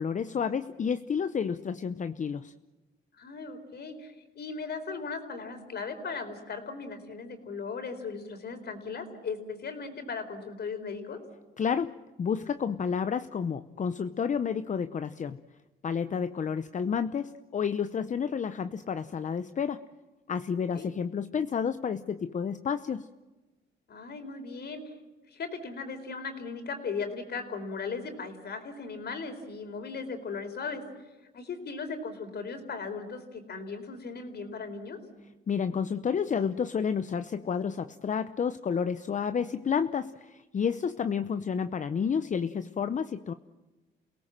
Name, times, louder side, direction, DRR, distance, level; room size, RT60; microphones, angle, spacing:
voice 1, 0.0-2.5 11.6-15.4 15.8-19.9 20.3-23.1 35.5-43.3, left 6 dB, 40° left, 11 dB, 0.8 m, -30 dB
voice 2, 3.2-11.2 20.7-20.9 23.9-24.9 25.3-30.8 31.3-35.0, left 4 dB, 55° left, 6 dB, 4.3 m, -37 dB
28.5 x 18.0 x 7.6 m, 1.2 s
cardioid pair, 90°, 20 cm